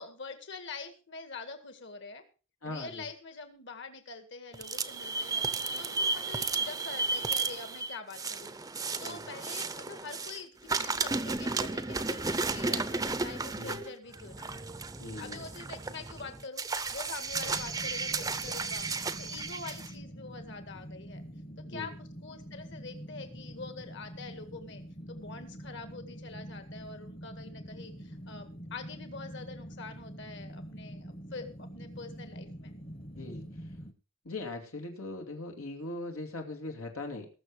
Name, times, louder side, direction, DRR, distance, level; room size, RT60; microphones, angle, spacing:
voice 1, 0.0-2.2 2.7-5.4 5.8-8.5 9.0-14.6 15.2-18.9 19.2-21.2 21.7-24.8 25.1-32.7, left 4 dB, 55° left, 8 dB, 1.9 m, -45 dB
voice 2, 2.6-3.1 9.0-9.3 13.5-13.8 15.0-15.4 21.6-22.0 33.1-33.7 34.2-37.3, left 2 dB, 90° left, 3 dB, 2.5 m, -40 dB
sound 1, 4.5-10.4 10.7-19.9, right 4 dB, 15° right, 0.6 m, -33 dB
sound 2, 17.3-33.9, equal, 30° left, 1.1 m, -45 dB
20.0 x 6.8 x 4.8 m, 0.35 s
head